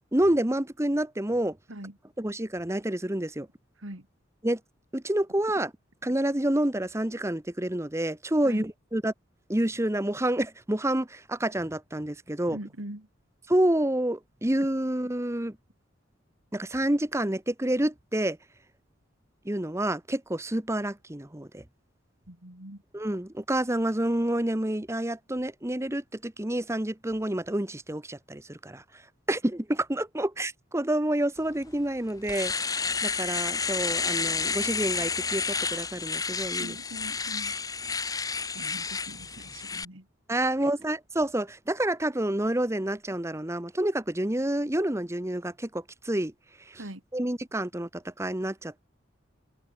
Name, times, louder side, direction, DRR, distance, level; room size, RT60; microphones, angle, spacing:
voice 1, 0.1-1.6 2.2-3.5 4.4-4.6 4.9-5.7 6.0-9.1 9.5-12.6 13.5-15.6 16.5-18.4 19.4-21.6 22.9-28.8 29.3-36.8 40.3-46.3 46.7-46.8 47.1-48.8, right 1 dB, 15° right, 1.1 m, -28 dB
voice 2, 12.5-13.1 22.3-22.8 36.6-37.6 38.5-40.1 40.6-40.7 46.7-47.0, right 1 dB, 85° right, 3.9 m, -42 dB
Domestic sounds home sounds, 31.6-31.7 32.1-39.9, left 5 dB, 20° left, 1.0 m, -30 dB
open air
head